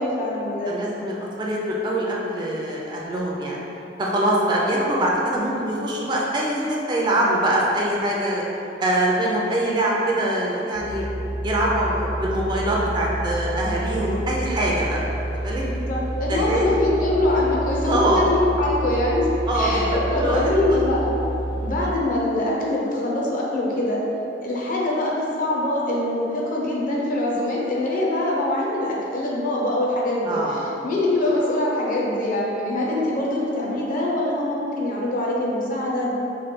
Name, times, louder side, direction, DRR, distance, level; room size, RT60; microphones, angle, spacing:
voice 1, 0.0-0.8 15.6-19.3 19.5-21.1 21.6-24.0 24.4-36.1, left 1 dB, 45° left, -4 dB, 0.5 m, -23 dB
voice 2, 0.7-3.6 4.0-8.4 8.8-11.1 11.4-15.6 16.3-16.6 17.8-18.2 19.5-19.8 20.1-20.4 20.7-20.8 21.5-21.7 30.2-30.7, right 1 dB, 25° right, -4 dB, 0.4 m, -23 dB
sound 1, 10.7-21.8, right 1 dB, 70° right, 0.7 m, -29 dB
3.2 x 2.2 x 4.2 m, 3.0 s
head